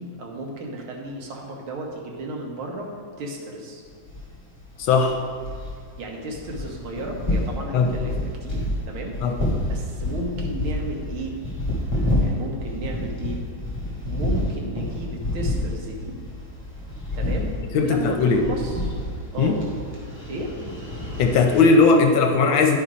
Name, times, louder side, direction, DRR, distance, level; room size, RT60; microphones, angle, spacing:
voice 1, 0.0-2.9 3.2-3.8 6.0-9.2 9.6-11.4 12.2-13.4 14.1-16.2 17.1-18.8 19.3-19.6 20.3-20.5, right 2 dB, 80° right, 0 dB, 2.0 m, -33 dB
sound 1, 3.9-21.7, left 1 dB, 15° left, 1.7 m, -29 dB
voice 2, 4.8-5.2 7.7-7.9 9.2-9.4 17.7-18.5 19.4-19.6 21.2-22.8, left 4 dB, 75° left, 4 dB, 1.4 m, -18 dB
11.0 x 4.3 x 5.0 m, 2.2 s
omnidirectional pair, 2.2 m